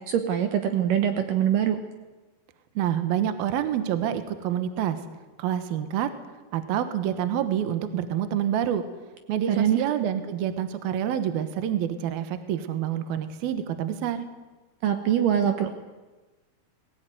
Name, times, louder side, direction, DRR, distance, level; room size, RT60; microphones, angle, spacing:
voice 1, 0.1-1.8 9.5-9.8 14.8-15.7, right 9 dB, 90° right, 7 dB, 1.9 m, -23 dB
voice 2, 2.8-5.0 5.4-6.1 6.5-8.8 9.3-14.3, right 10 dB, 65° right, 10 dB, 2.6 m, -27 dB
21.0 x 18.0 x 9.3 m, 1.2 s
omnidirectional pair, 5.7 m